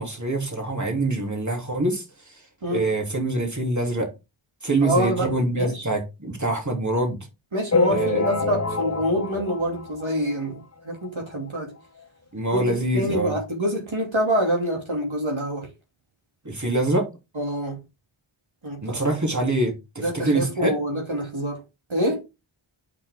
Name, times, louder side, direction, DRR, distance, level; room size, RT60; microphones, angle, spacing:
voice 1, 0.0-2.0 2.7-4.1 4.6-7.2 7.9-8.8 12.3-13.3 16.4-17.1 18.8-20.7, right 2 dB, 35° right, 3.3 m, -25 dB
voice 2, 4.8-5.3 5.6-5.9 7.5-11.7 12.5-12.6 12.9-15.7 17.3-17.8 18.6-19.0 20.0-21.6 21.9-22.2, equal, 65° right, 2.7 m, -26 dB
sound 1, 7.7-10.6 11.0-11.1 11.3-11.5 11.8-11.9 12.7-12.8 13.3-13.4, left 4 dB, 30° left, 0.7 m, -27 dB
8.5 x 6.3 x 3.6 m
wide cardioid pair, 45°, 50 cm